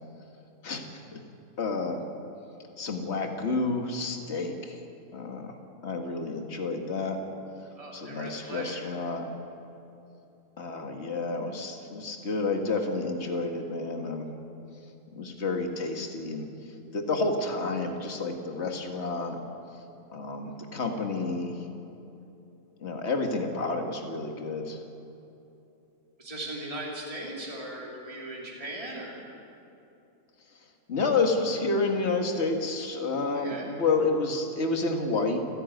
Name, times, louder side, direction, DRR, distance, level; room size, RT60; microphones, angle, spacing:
voice 1, 1.6-2.0 2.8-4.8 5.1-5.6 5.8-7.2 7.9-9.2 10.6-14.3 15.1-16.5 16.9-19.4 20.1-21.6 22.8-24.8 30.9-35.4, left 3 dB, 45° left, 4 dB, 2.1 m, -30 dB
voice 2, 7.8-8.9 26.2-29.2 33.3-33.7, right 1 dB, 20° right, -3 dB, 3.3 m, -38 dB
30.0 x 10.5 x 9.3 m, 2.8 s
omnidirectional pair, 1.7 m